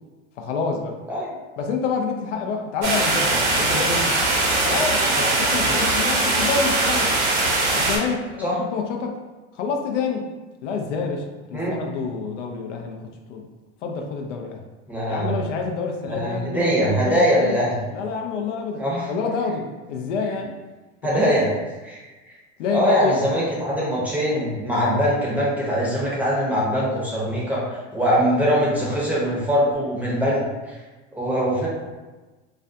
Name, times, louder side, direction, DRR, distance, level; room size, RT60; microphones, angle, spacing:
voice 1, 0.4-1.0 1.6-4.1 4.6-7.1 7.7-9.2 9.6-10.3 10.6-13.0 13.3-13.5 13.8-14.6 15.1-17.6 17.9-20.6 21.0-21.3 22.6-23.1, left 5 dB, 85° left, 2 dB, 0.5 m, -27 dB
sound 1, 2.8-8.0, right 2 dB, 70° right, 0.9 m, -21 dB
voice 2, 14.9-15.4 16.0-17.8 18.8-19.1 21.0-21.5 21.8-22.3 22.7-27.6 27.9-30.7 31.1-31.7, equal, 5° right, -6 dB, 0.6 m, -22 dB
2.4 x 2.2 x 2.5 m, 1.2 s
hypercardioid pair, 105°, 36 cm